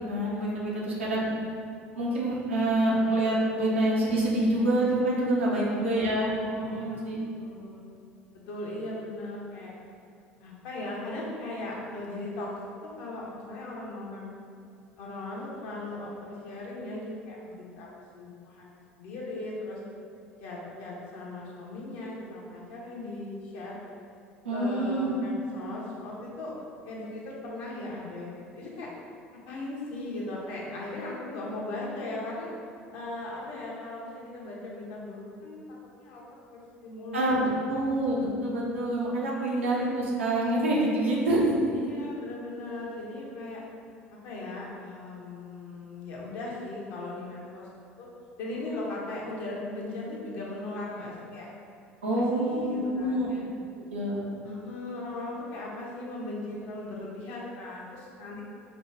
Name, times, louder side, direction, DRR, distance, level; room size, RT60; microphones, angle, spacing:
voice 1, 0.1-1.3 2.0-7.2 24.4-25.2 37.1-41.5 52.0-53.4 53.7-54.3, right 1 dB, 75° right, -5 dB, 0.8 m, -26 dB
voice 2, 0.7-1.1 5.5-6.1 6.6-7.9 8.5-9.7 10.4-12.5 12.8-14.3 15.0-17.9 18.1-19.8 20.4-23.8 24.5-26.5 26.8-28.9 29.3-32.5 32.9-35.6 36.0-36.2 36.5-37.5 41.7-43.6 44.1-48.1 48.4-51.5 52.1-53.4 54.4-58.4, left 2 dB, 60° left, -4 dB, 0.9 m, -38 dB
5.1 x 2.3 x 3.4 m, 2.4 s
figure-of-eight pair, 65°, 7 cm